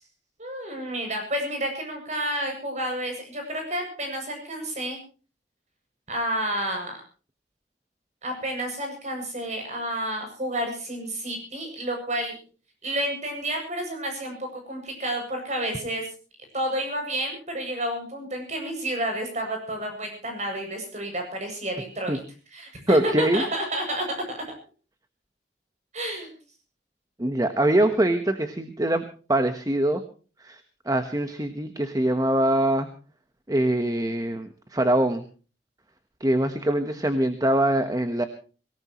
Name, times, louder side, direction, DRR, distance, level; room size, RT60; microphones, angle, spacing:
voice 1, 0.4-5.0 6.1-7.0 8.2-12.3 12.8-16.1 16.5-22.2 22.5-24.4 25.9-26.3, right 1 dB, 40° right, 4 dB, 7.8 m, -30 dB
voice 2, 22.9-23.4 27.2-29.0 29.3-30.0 30.4-30.6 30.8-32.9 33.5-35.2 36.2-38.3, right 1 dB, 20° right, 8 dB, 1.2 m, -23 dB
24.0 x 18.0 x 3.1 m, 0.37 s
head